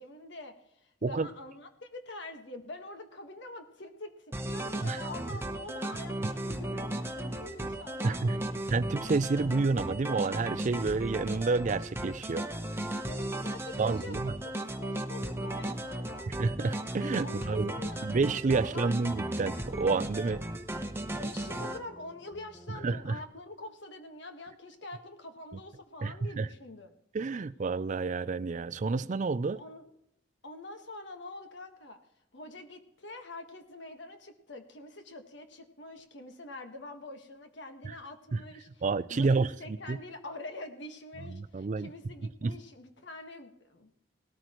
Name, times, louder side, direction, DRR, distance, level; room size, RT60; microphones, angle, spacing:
voice 1, 0.0-8.6 13.0-16.3 17.2-18.1 18.6-19.0 21.1-26.9 29.5-29.9 30.4-32.0 32.3-38.8 39.1-44.0, left 2 dB, 65° left, 1.6 m, -45 dB
sound 1, 4.3-21.8, right 1 dB, 15° right, 0.9 m, -36 dB
voice 2, 8.0-8.4 8.7-12.5 13.8-14.3 16.3-17.7 18.0-20.4 22.8-23.2 26.0-26.5 27.1-29.6 38.3-38.4 38.8-39.5 39.9-40.0 41.3-41.9 42.4-42.6, right 4 dB, 40° right, 0.4 m, -29 dB
sound 2, 17.4-23.2, right 1 dB, 10° left, 2.7 m, -53 dB
18.5 x 13.0 x 3.1 m
head